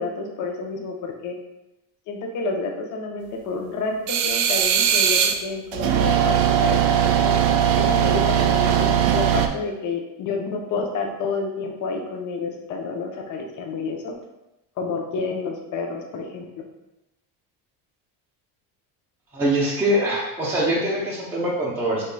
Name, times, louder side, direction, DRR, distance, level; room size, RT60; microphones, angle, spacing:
voice 1, 0.0-1.4 2.1-7.3 7.8-14.2 14.8-16.5, left 4 dB, 45° left, 2 dB, 0.6 m, -29 dB
sound 1, 4.1-5.4 5.7-9.5, right 9 dB, 85° right, 0.6 m, -19 dB
voice 2, 19.3-22.0, right 1 dB, 5° right, -6 dB, 0.6 m, -23 dB
5.3 x 3.1 x 2.2 m, 0.95 s
cardioid pair, 140°, 43 cm